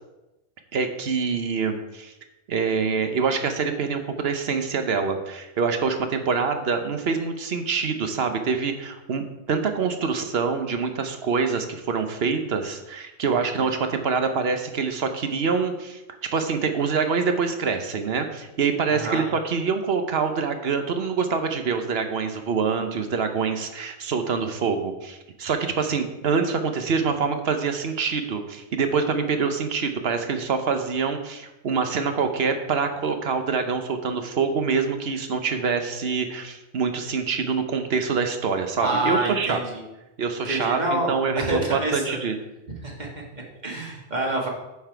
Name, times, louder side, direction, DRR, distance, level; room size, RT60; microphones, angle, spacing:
voice 1, 0.7-2.1 2.5-16.0 16.3-39.6 40.2-42.3, right 5 dB, 65° right, 7 dB, 1.1 m, -25 dB
voice 2, 18.9-19.2 38.8-39.8 40.4-42.2 42.8-44.5, right 1 dB, 40° right, -1 dB, 1.7 m, -28 dB
8.6 x 5.8 x 4.6 m, 0.99 s
omnidirectional pair, 1.1 m